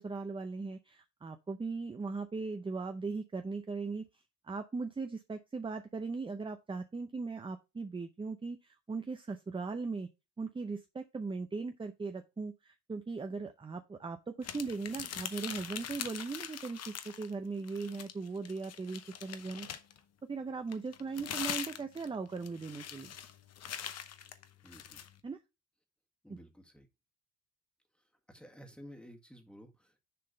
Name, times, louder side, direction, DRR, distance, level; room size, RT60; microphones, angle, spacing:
voice 1, 0.0-4.1 4.4-10.1 10.4-19.7 20.3-23.1 25.2-25.4 26.3-26.4, right 4 dB, 15° right, 8 dB, 0.6 m, -39 dB
sound 1, 14.4-17.3 17.6-20.0 20.7-25.1, left 9 dB, 55° left, 0.8 m, -42 dB
voice 2, 24.6-25.0 26.2-26.9 28.3-30.0, equal, 5° left, 3 dB, 1.6 m, -53 dB
6.8 x 3.7 x 4.9 m, 0.25 s
cardioid pair, 90°, 30 cm